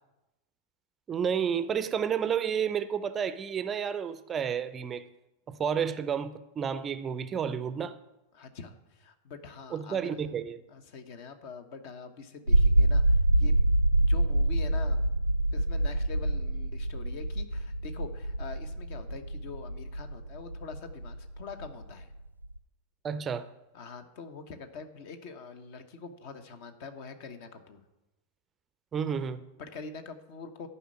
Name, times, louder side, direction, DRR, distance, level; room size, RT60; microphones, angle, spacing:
voice 1, 1.1-5.1 5.5-8.0 9.7-10.6 23.0-23.5 28.9-29.4, right 7 dB, 25° right, 0.5 m, -31 dB
voice 2, 8.3-10.2 10.7-13.5 14.1-15.1 15.5-22.1 23.7-27.8 29.6-30.7, left 5 dB, 50° left, 1.2 m, -44 dB
sound 1, 12.5-22.6, right 1 dB, 90° right, 0.3 m, -26 dB
11.5 x 5.6 x 8.3 m
figure-of-eight pair, 90°, 0 cm